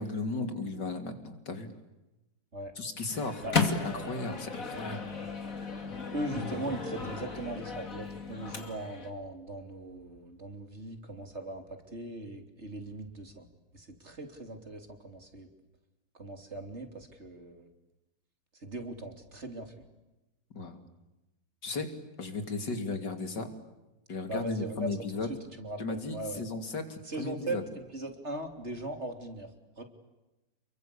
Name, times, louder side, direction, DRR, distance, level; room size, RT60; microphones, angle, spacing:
voice 1, 0.0-1.7 2.8-5.1 20.6-20.8 21.6-21.9 22.2-23.5 24.1-25.3 25.8-27.6, left 3 dB, 60° left, 7 dB, 3.6 m, -35 dB
Microwave oven, 3.1-9.1, left 4 dB, 45° left, 3.1 m, -35 dB
voice 2, 6.1-13.5 13.7-15.5 16.2-17.7 18.6-19.7 24.3-24.9 25.6-26.4 27.1-29.5 29.8-29.9, right 2 dB, 35° right, 6 dB, 3.6 m, -39 dB
30.0 x 23.0 x 8.6 m, 1.0 s
omnidirectional pair, 2.1 m